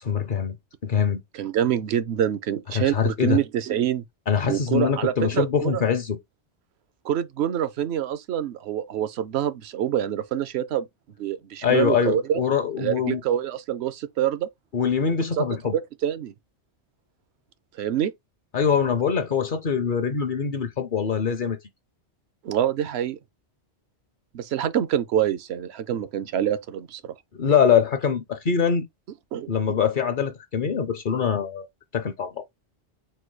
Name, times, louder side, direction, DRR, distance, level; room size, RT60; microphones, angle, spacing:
voice 1, 0.1-0.6 0.8-1.2 2.7-3.4 4.3-6.2 11.6-13.2 14.7-15.8 18.5-21.6 27.4-28.9 29.5-31.7 31.9-32.4, left 7 dB, 50° left, 0.7 m, -23 dB
voice 2, 1.3-4.0 4.5-5.8 7.0-10.9 11.2-12.4 12.8-14.5 15.4-15.5 15.7-16.3 17.8-18.1 22.4-23.2 24.3-27.1 29.3-29.8, right 10 dB, 70° right, 0.8 m, -26 dB
4.4 x 2.3 x 4.5 m
omnidirectional pair, 1.2 m